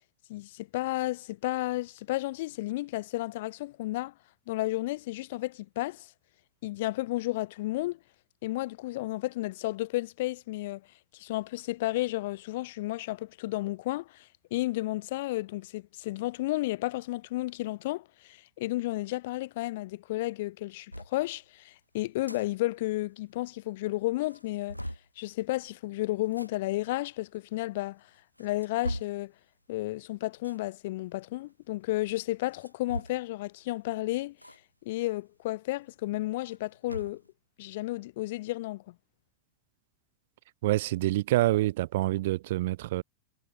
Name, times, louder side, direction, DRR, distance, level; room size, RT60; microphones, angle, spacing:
voice 1, 0.3-4.1 4.5-6.1 6.6-8.0 8.4-10.8 11.1-24.8 25.2-28.0 28.4-29.3 29.7-34.4 34.8-37.2 37.6-38.9, left 18 dB, 50° left, 0.7 m, -32 dB
sound 1, 20.9-21.1 22.0-22.4 22.8-22.9 23.1-23.2 23.8-23.9 24.3-25.1 26.2-26.5 27.3-27.4 28.1-29.2 30.4-30.7 32.4-33.4 34.4-34.6 34.9-35.0 36.3-37.3, equal, 90° left, 1.3 m, -39 dB
voice 2, 40.6-43.0, right 16 dB, 55° right, 1.4 m, -26 dB
figure-of-eight pair, 90°, 0 cm